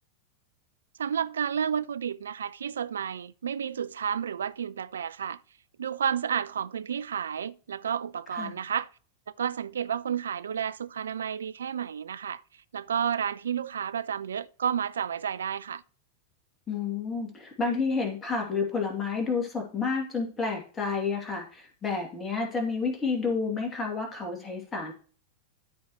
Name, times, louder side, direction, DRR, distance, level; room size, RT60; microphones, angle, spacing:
voice 1, 1.0-5.4 5.8-8.9 9.4-12.4 12.7-15.8, right 8 dB, 65° right, 0.3 m, -31 dB
voice 2, 16.7-24.9, left 4 dB, 20° left, 2.5 m, -30 dB
13.0 x 5.0 x 3.0 m
figure-of-eight pair, 90°, 0 cm